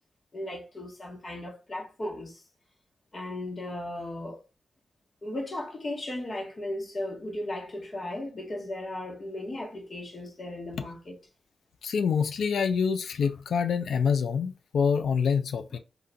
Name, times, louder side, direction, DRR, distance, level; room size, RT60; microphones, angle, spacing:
voice 1, 0.3-2.4 3.1-4.4 5.2-11.2 15.7-15.8, left 1 dB, 50° left, 1.1 m, -36 dB
voice 2, 11.8-15.8, left 6 dB, 85° left, 0.4 m, -26 dB
3.8 x 2.4 x 2.2 m
cardioid pair, 55°, 0 cm